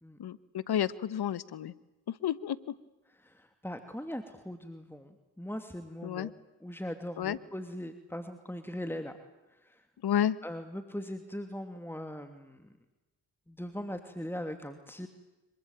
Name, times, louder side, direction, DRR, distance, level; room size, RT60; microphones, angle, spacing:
voice 1, 0.2-1.7 2.1-2.7 6.0-6.3 7.2-7.4 10.0-10.4, left 10 dB, 70° left, 18 dB, 1.2 m, -31 dB
voice 2, 3.2-6.3 6.6-9.1 9.5-9.8 10.4-12.7 13.5-15.1, equal, 5° left, 7 dB, 2.9 m, -40 dB
26.5 x 23.5 x 9.1 m, 1.1 s
supercardioid pair, 40°, 40 cm